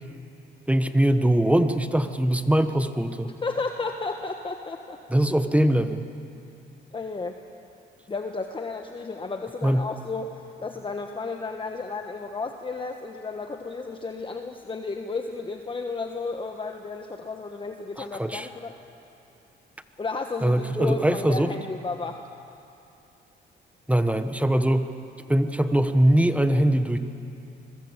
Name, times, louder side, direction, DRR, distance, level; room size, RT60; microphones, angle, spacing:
voice 1, 0.7-3.3 5.1-6.1 9.6-9.9 18.2-18.5 20.4-21.5 23.9-24.9 25.3-27.0, right 1 dB, 5° right, 9 dB, 1.3 m, -22 dB
voice 2, 3.4-5.0 6.9-7.4 8.1-18.8 20.0-22.3, left 4 dB, 25° left, 4 dB, 1.3 m, -33 dB
25.0 x 22.0 x 8.1 m, 2.7 s
cardioid pair, 90°, 20 cm